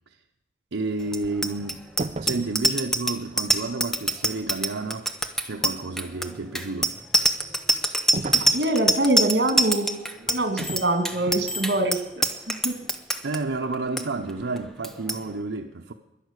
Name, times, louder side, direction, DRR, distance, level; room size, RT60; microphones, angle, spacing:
voice 1, 0.7-1.8 2.2-5.1 5.4-7.0 13.2-15.9, right 3 dB, 90° right, 0.8 m, -30 dB
Bicycle bell, 1.1-13.4 13.7-14.0 14.3-14.6 14.8-15.2, right 1 dB, ahead, 0.7 m, -24 dB
sound 1, 2.0-2.6 8.1-8.6 10.6-10.9 11.3-11.5, right 2 dB, 35° right, 0.4 m, -32 dB
voice 2, 8.4-12.8, right 1 dB, 60° right, 2.2 m, -25 dB
11.0 x 11.0 x 8.2 m
head